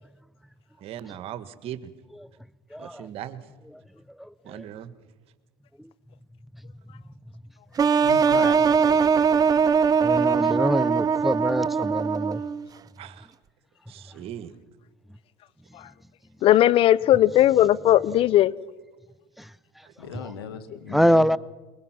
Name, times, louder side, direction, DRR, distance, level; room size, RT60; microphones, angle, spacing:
voice 1, 0.8-1.9 2.8-3.4 4.4-4.9 13.0-13.3 13.9-14.6 19.8-20.2, right 10 dB, 55° right, 1.6 m, -39 dB
voice 2, 2.7-3.1 4.2-4.7 5.8-5.9 10.0-12.4 19.4-19.5 20.1-20.3 20.9-21.4, equal, ahead, 0.6 m, -25 dB
sound 1, 7.8-12.6, right 6 dB, 30° right, 0.9 m, -21 dB
voice 3, 8.0-9.1 20.0-21.2, left 6 dB, 85° left, 2.3 m, -36 dB
voice 4, 16.4-18.5, left 13 dB, 50° left, 0.8 m, -18 dB
23.5 x 21.5 x 6.0 m
hypercardioid pair, 85°, 12 cm